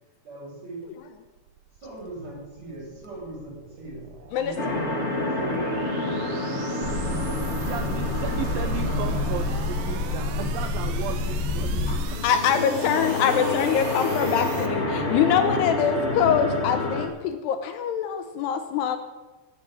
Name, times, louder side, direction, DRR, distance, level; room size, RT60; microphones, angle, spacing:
voice 1, 0.2-0.8 1.8-4.0 4.3-5.6 5.9-8.8, right 2 dB, 40° right, -6 dB, 7.8 m, -41 dB
sound 1, 0.9-14.7, right 8 dB, 70° right, 2.0 m, -43 dB
voice 2, 4.3-4.8 12.2-19.0, left 8 dB, 75° left, 8 dB, 2.8 m, -24 dB
sound 2, 4.6-17.1, left 2 dB, 30° left, 1.2 m, -29 dB
sound 3, 6.8-12.0, left 3 dB, 5° left, 6.4 m, -28 dB
voice 3, 7.6-12.6, right 10 dB, 85° right, 8 dB, 2.0 m, -35 dB
15.0 x 8.1 x 8.7 m, 1.2 s
omnidirectional pair, 4.9 m